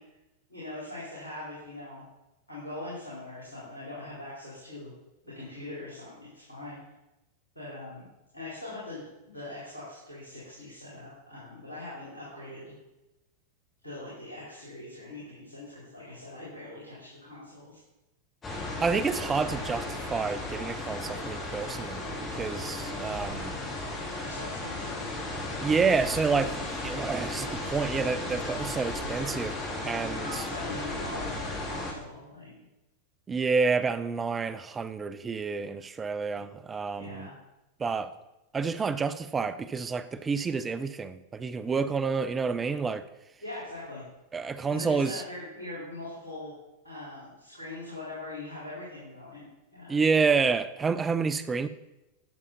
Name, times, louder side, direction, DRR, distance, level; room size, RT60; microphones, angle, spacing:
voice 1, 0.5-2.0 2.5-4.9 5.2-6.8 7.5-8.1 8.3-12.7 13.8-17.8 24.2-25.2 30.2-32.5 36.3-36.4 36.9-37.3 43.4-44.0 44.7-46.5 46.8-50.0, left 2 dB, 85° left, 4.4 m, -42 dB
sound 1, 18.4-31.9, left 2 dB, 20° left, 3.0 m, -35 dB
voice 2, 18.8-23.5 25.6-26.5 26.8-29.6 29.8-30.2 33.3-37.3 37.8-38.1 38.5-43.0 44.3-45.2 49.9-51.7, right 5 dB, 15° right, 0.7 m, -29 dB
13.5 x 7.1 x 4.2 m
figure-of-eight pair, 90°, 0 cm